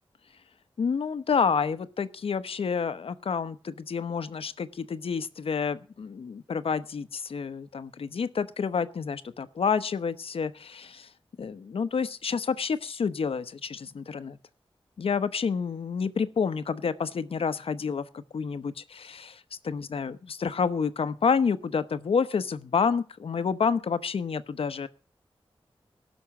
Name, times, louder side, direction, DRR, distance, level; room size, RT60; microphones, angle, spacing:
voice 1, 0.8-11.1 11.4-14.4 15.0-24.9, left 6 dB, 75° left, 12 dB, 0.9 m, -29 dB
16.5 x 6.3 x 7.0 m, 0.39 s
wide cardioid pair, 80°, 10 cm